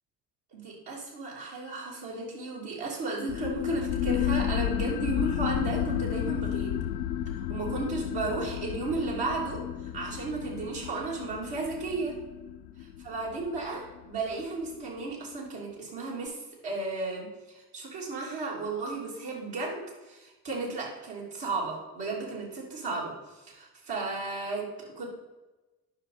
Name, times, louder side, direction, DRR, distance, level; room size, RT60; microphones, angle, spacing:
voice 1, 0.5-6.8 7.4-9.6 9.9-12.1 13.0-16.4 16.6-17.3 17.5-23.1 23.5-25.1, right 3 dB, 60° right, -4 dB, 3.2 m, -34 dB
sound 1, 3.3-14.4, left 10 dB, 80° left, 0.6 m, -32 dB
9.6 x 6.4 x 4.1 m, 1.1 s
figure-of-eight pair, 50°, 45 cm